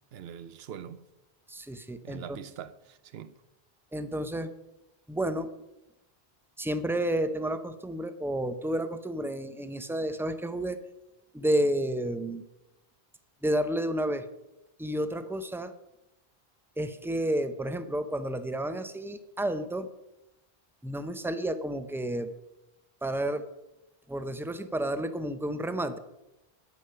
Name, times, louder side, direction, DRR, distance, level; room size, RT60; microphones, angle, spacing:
voice 1, 0.1-1.0 2.0-3.4, right 9 dB, 75° right, 0.9 m, -43 dB
voice 2, 1.5-2.4 3.9-4.5 5.1-5.5 6.6-10.8 11.3-12.4 13.4-14.3 14.8-15.7 16.8-19.9 20.8-22.3 23.0-23.4 24.1-26.0, right 1 dB, 5° right, 0.3 m, -31 dB
9.7 x 8.4 x 5.6 m
omnidirectional pair, 1.1 m